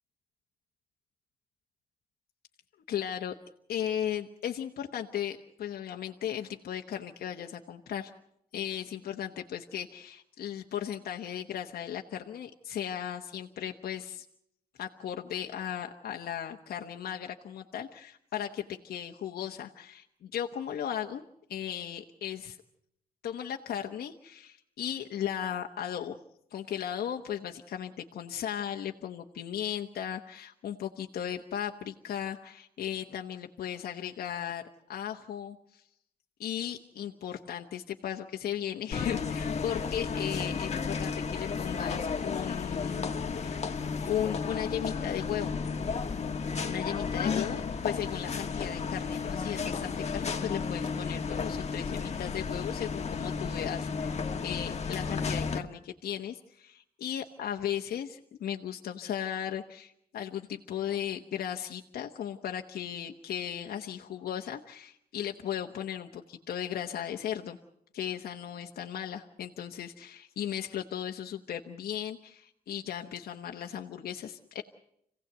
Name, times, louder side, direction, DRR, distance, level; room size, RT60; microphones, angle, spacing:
voice 1, 2.9-3.3 3.7-8.1 8.5-14.2 14.8-22.6 23.2-26.2 26.5-35.8 36.4-43.1 43.4-43.6 44.0-45.6 46.6-67.6 67.9-74.6, left 10 dB, 85° left, 3 dB, 1.1 m, -36 dB
sound 1, 38.9-55.6, left 5 dB, 45° left, 1.6 m, -33 dB
26.0 x 16.5 x 8.0 m, 0.76 s
cardioid pair, 90°, 15 cm